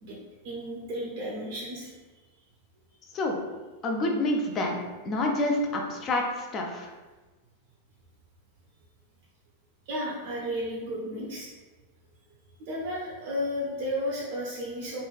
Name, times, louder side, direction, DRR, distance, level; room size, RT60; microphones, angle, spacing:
voice 1, 0.4-1.9 9.9-11.5 12.6-15.0, equal, 50° right, -4 dB, 0.6 m, -33 dB
voice 2, 3.8-4.8 5.0-6.9, left 1 dB, 30° left, 1 dB, 0.5 m, -28 dB
3.0 x 2.5 x 2.4 m, 1.2 s
figure-of-eight pair, 90°, 0 cm